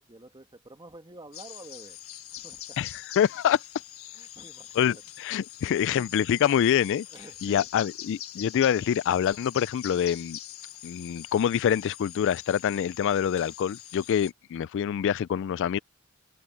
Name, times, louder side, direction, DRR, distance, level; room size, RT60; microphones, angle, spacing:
voice 1, 0.0-2.0 2.3-2.8 4.1-5.0 5.7-6.1 7.1-8.1, right 2 dB, 20° right, 2.2 m, -49 dB
sound 1, 1.3-14.3, left 12 dB, 80° left, 1.5 m, -44 dB
voice 2, 2.8-3.6 4.8-7.1 7.4-10.4 10.8-15.8, left 9 dB, 60° left, 0.3 m, -25 dB
head